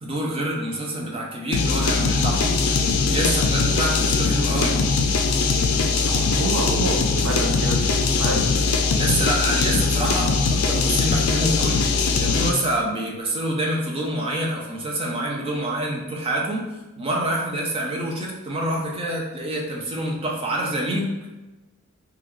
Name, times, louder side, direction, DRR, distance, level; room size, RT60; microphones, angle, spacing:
voice 1, 0.0-2.8 3.1-4.8 9.0-11.8 12.2-16.6 17.0-21.1, right 1 dB, 25° right, -1 dB, 0.5 m, -26 dB
sound 1, 1.5-12.7, left 4 dB, 85° left, 0.4 m, -21 dB
voice 2, 6.1-8.5, right 2 dB, 85° right, 2 dB, 0.6 m, -28 dB
3.5 x 2.3 x 3.1 m, 1.1 s
head